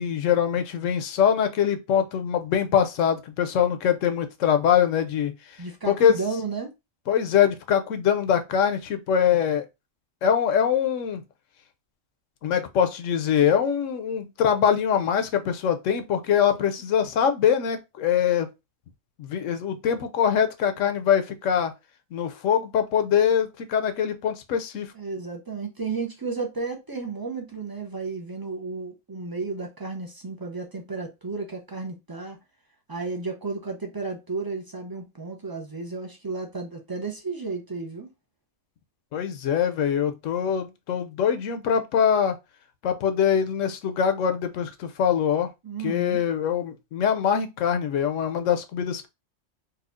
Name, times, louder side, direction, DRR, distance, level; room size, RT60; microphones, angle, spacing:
voice 1, 0.0-5.6 5.9-6.2 7.1-9.7 10.2-11.2 12.4-18.5 19.2-21.7 22.1-24.9 39.1-42.4 42.8-45.5 45.8-49.1, left 8 dB, 75° left, 0.9 m, -23 dB
voice 2, 5.6-6.7 24.9-32.4 32.9-38.1 45.6-46.2, right 4 dB, 35° right, 0.3 m, -33 dB
4.1 x 2.3 x 2.4 m
omnidirectional pair, 1.4 m